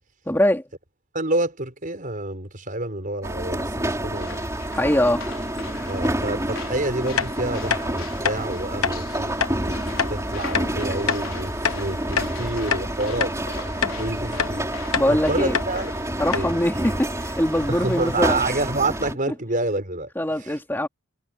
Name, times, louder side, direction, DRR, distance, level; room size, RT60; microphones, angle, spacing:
voice 1, 0.3-0.6 4.7-5.2 13.8-13.9 15.0-15.5 16.2-18.4 20.2-20.9, left 1 dB, 10° left, 2.9 m, -22 dB
voice 2, 1.1-4.5 5.9-9.8 10.1-13.4 13.7-14.7 15.0-15.9 16.3-16.5 17.7-20.1 20.4-20.6, right 2 dB, 40° right, 5.4 m, -28 dB
sound 1, 3.2-19.1, right 1 dB, 15° right, 4.4 m, -29 dB
sound 2, 4.1-18.8, left 5 dB, 65° left, 4.6 m, -41 dB
sound 3, 7.2-7.3 7.7-7.8 8.2-8.4 8.8-9.0 9.4-9.6 10.0-10.1 10.5-10.7 11.1-11.2 11.6-12.4 12.7-12.9 13.2-13.4 13.8-14.0 14.4-14.5 14.9-15.1 15.5-15.7 16.0-16.1 16.3-16.5, left 6 dB, 80° left, 1.3 m, -24 dB
head